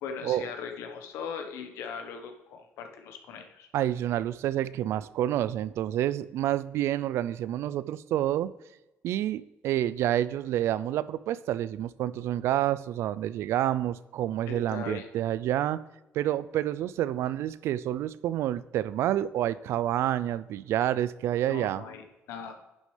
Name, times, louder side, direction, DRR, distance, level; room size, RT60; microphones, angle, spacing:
voice 1, 0.0-3.7 14.5-15.1 21.5-22.5, left 6 dB, 85° left, 5 dB, 1.1 m, -39 dB
voice 2, 3.7-8.5 9.0-15.8 16.1-21.8, right 12 dB, 70° right, 17 dB, 0.4 m, -28 dB
10.5 x 6.5 x 3.3 m, 1.0 s
cardioid pair, 110°, 5 cm